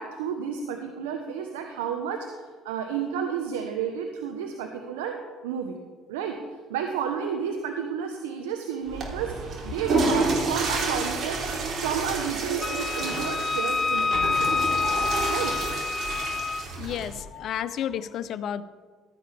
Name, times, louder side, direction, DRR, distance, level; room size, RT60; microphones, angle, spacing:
voice 1, 0.0-2.3 2.6-5.2 5.4-5.8 6.1-6.4 6.7-9.3 9.6-11.4 11.8-15.5, right 7 dB, 85° right, 4 dB, 1.0 m, -31 dB
Water / Toilet flush, 8.8-17.2, right 3 dB, 55° right, 3.7 m, -29 dB
Wind instrument woodwind instrument, 12.6-16.6, left 4 dB, 20° left, 0.9 m, -27 dB
voice 2, 16.8-18.6, left 9 dB, 60° left, 13 dB, 0.7 m, -31 dB
15.5 x 13.0 x 3.5 m, 1.4 s
hypercardioid pair, 65°, 0 cm